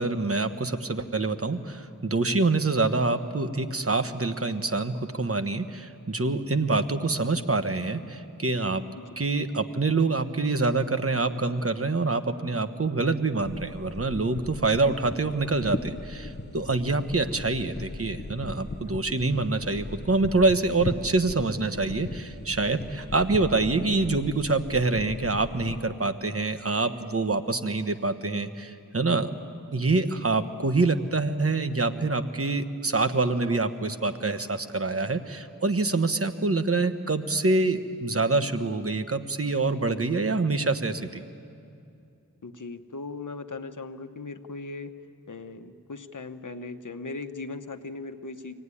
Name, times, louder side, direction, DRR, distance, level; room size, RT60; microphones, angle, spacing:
voice 1, 0.0-8.8 9.2-29.3 29.7-41.2, right 3 dB, 40° right, 9 dB, 1.2 m, -26 dB
sound 1, 13.4-25.8, left 2 dB, 30° left, 1.0 m, -38 dB
voice 2, 42.4-44.9 45.3-48.5, left 3 dB, 60° left, 8 dB, 1.1 m, -38 dB
23.5 x 17.5 x 9.8 m, 2.5 s
wide cardioid pair, 60°, 35 cm